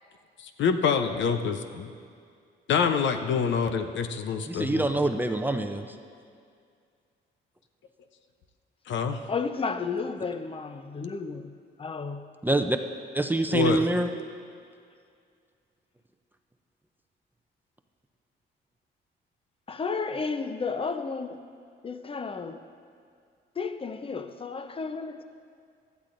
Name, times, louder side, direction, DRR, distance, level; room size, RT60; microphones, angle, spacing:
voice 1, 0.4-1.9 2.7-5.1 8.9-9.3 13.5-13.9, left 6 dB, 70° left, 0.8 m, -26 dB
voice 2, 4.6-5.9 12.4-12.8 13.1-14.1, right 2 dB, 10° right, 0.6 m, -25 dB
voice 3, 9.3-12.3 19.7-21.4 21.8-22.7 23.6-25.2, left 4 dB, 30° left, 0.7 m, -33 dB
17.5 x 12.0 x 2.6 m
cardioid pair, 90°, 20 cm